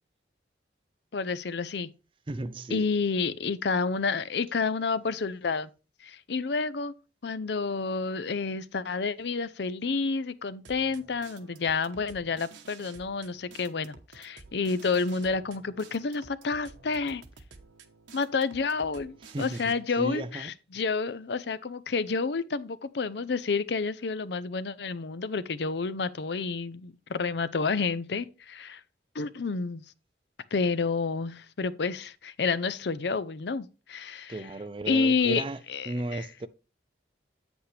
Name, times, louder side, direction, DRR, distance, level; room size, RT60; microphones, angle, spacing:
voice 1, 1.1-1.9 2.7-5.7 6.0-6.9 7.2-17.2 18.1-28.8 29.1-29.8 30.5-34.3 34.9-35.4 35.7-36.3, left 4 dB, 70° left, 0.5 m, -29 dB
voice 2, 2.3-2.9 19.2-20.5 34.3-35.6 35.9-36.5, right 2 dB, 30° right, 0.4 m, -35 dB
sound 1, 10.6-19.7, right 4 dB, 85° right, 1.1 m, -51 dB
8.4 x 8.1 x 3.3 m
head